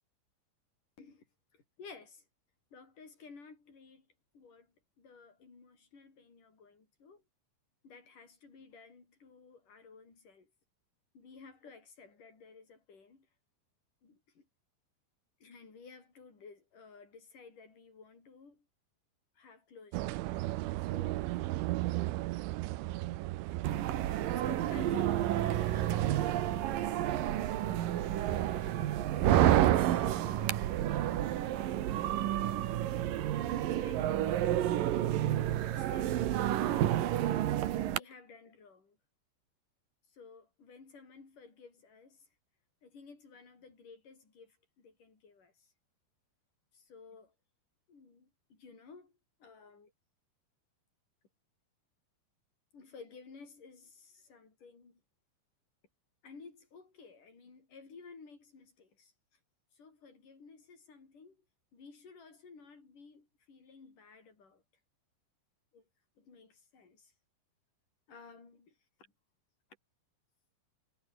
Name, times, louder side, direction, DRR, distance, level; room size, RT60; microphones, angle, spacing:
voice 1, 1.5-2.2 2.7-4.1 4.3-7.2 7.8-10.5 11.1-13.3 14.0-14.5 15.4-18.7 19.4-20.2 20.8-21.3 23.3-23.6 24.3-26.3 27.5-29.4 30.0-31.5 33.5-35.2 35.6-37.1 37.9-39.0 40.1-42.3 42.8-45.7 46.7-47.3 47.9-49.1 49.4-49.9 52.7-55.0 56.2-59.1 59.7-61.4 61.7-64.6 65.7-65.8 66.2-67.1 68.1-68.8, left 4 dB, 40° left, 8.0 m, -54 dB
sound 1, 19.9-26.4, right 18 dB, 80° right, 3.4 m, -36 dB
sound 2, 23.6-38.0, right 12 dB, 65° right, 2.4 m, -30 dB
omnidirectional pair, 5.6 m